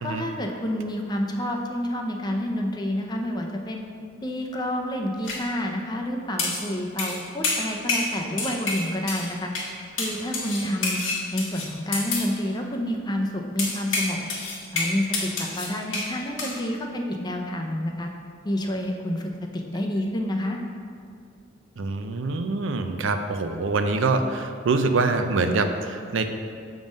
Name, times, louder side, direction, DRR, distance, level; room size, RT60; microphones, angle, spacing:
voice 1, 0.0-3.8 4.2-9.5 10.0-11.0 11.3-14.2 14.7-18.1 18.4-20.6, left 1 dB, 20° left, 2 dB, 0.5 m, -29 dB
sound 1, 5.2-5.4 6.4-6.7 7.0-7.2 7.4-8.1 8.4-9.3 9.6-9.7 10.0-12.3 13.6-16.1 16.4-16.6, left 3 dB, 80° left, 1.5 m, -28 dB
voice 2, 21.8-26.3, right 3 dB, 75° right, 7 dB, 0.5 m, -25 dB
7.3 x 3.7 x 5.1 m, 2.3 s
head